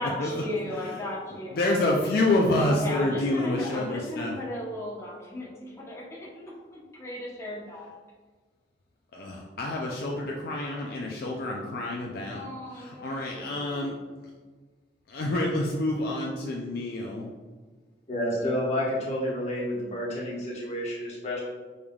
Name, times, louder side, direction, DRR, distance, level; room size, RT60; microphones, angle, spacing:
voice 1, 0.0-1.8 2.7-7.9 12.3-14.0, left 1 dB, 15° left, -6 dB, 0.9 m, -36 dB
voice 2, 1.5-4.3 9.1-12.4 12.7-13.9 15.1-17.3, left 2 dB, 60° left, -1 dB, 0.4 m, -28 dB
voice 3, 18.1-21.4, left 1 dB, 40° left, -4 dB, 1.1 m, -29 dB
5.3 x 3.3 x 2.3 m, 1.4 s
head